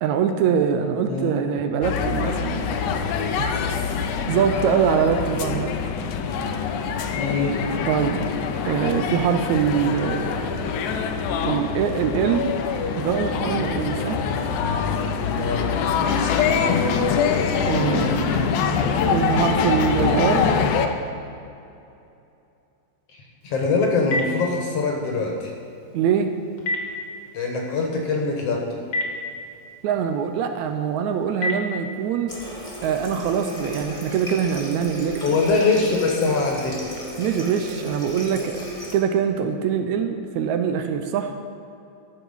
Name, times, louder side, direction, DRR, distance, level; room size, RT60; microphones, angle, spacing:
voice 1, 0.0-2.6 3.4-5.7 7.9-8.2 8.7-10.9 11.4-12.6 13.0-14.2 17.7-18.6 19.1-20.5 25.9-26.3 29.8-32.3 32.8-35.4 37.2-38.6 38.9-41.3, right 7 dB, 75° right, 7 dB, 1.9 m, -23 dB
sound 1, 1.8-20.9, left 6 dB, 85° left, 2.2 m, -24 dB
voice 2, 7.1-7.7 15.3-15.7 23.4-25.5 27.3-28.8 35.2-36.8, left 4 dB, 60° left, 1 dB, 2.2 m, -23 dB
Telephone, 23.4-32.3, left 1 dB, 45° left, 1.9 m, -34 dB
Water tap faucet, 32.3-39.0, equal, 15° left, 2.0 m, -35 dB
12.0 x 7.0 x 5.5 m, 2.7 s
omnidirectional pair, 3.4 m